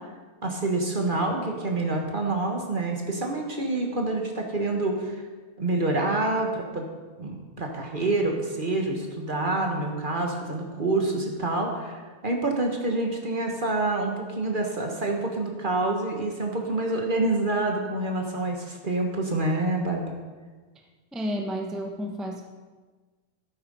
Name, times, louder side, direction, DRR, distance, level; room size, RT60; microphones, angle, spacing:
voice 1, 0.4-5.2 5.6-6.8 7.2-20.0, right 2 dB, 25° right, 2 dB, 1.4 m, -27 dB
voice 2, 21.1-22.4, equal, ahead, 1 dB, 0.4 m, -31 dB
12.5 x 9.1 x 5.5 m, 1.4 s
omnidirectional pair, 2.4 m